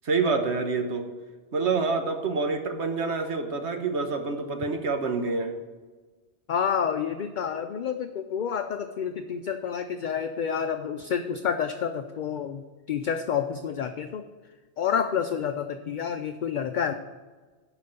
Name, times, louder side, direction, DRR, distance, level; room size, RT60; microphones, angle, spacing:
voice 1, 0.0-1.0 1.5-5.5, right 4 dB, 80° right, 5 dB, 1.5 m, -27 dB
voice 2, 6.5-14.2 14.8-16.9, left 7 dB, 55° left, 7 dB, 0.6 m, -29 dB
12.0 x 5.0 x 6.9 m, 1.4 s
omnidirectional pair, 1.1 m